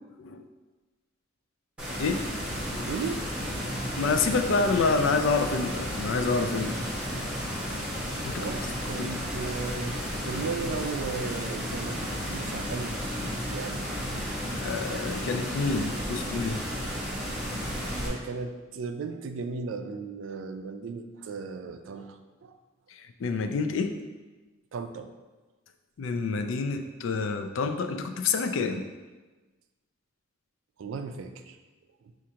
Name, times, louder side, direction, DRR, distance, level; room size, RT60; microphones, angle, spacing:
sound 1, 1.8-18.1, equal, 5° right, 1.4 m, -33 dB
voice 1, 2.8-3.2 8.4-13.0 13.5-14.0 17.4-17.5 18.0-22.5 24.7-25.1 30.8-31.6, right 4 dB, 75° right, 8 dB, 0.3 m, -36 dB
voice 2, 4.0-6.7 8.2-8.5 9.0-9.1 14.6-16.6 23.2-24.0 26.0-28.8, left 4 dB, 75° left, 7 dB, 0.4 m, -27 dB
6.1 x 2.5 x 2.8 m, 1.2 s
head